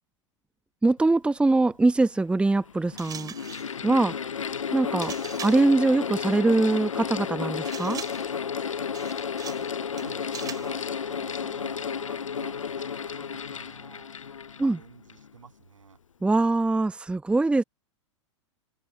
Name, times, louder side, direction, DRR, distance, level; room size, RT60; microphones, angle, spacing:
voice 1, 0.8-3.3 3.8-4.1 4.7-5.1 5.4-8.0 14.6-14.8 16.2-17.6, right 2 dB, 5° right, 1.0 m, -22 dB
Mechanical fan, 1.7-1.8 2.6-15.3, left 7 dB, 85° left, 0.5 m, -32 dB
sound 1, 3.0-3.7 5.0-5.7 7.6-8.3 8.9-9.7 10.0-10.7, right 8 dB, 25° right, 5.8 m, -41 dB
voice 2, 9.5-14.1 14.6-16.0, right 6 dB, 80° right, 7.8 m, -49 dB
hypercardioid pair, 100°, 16 cm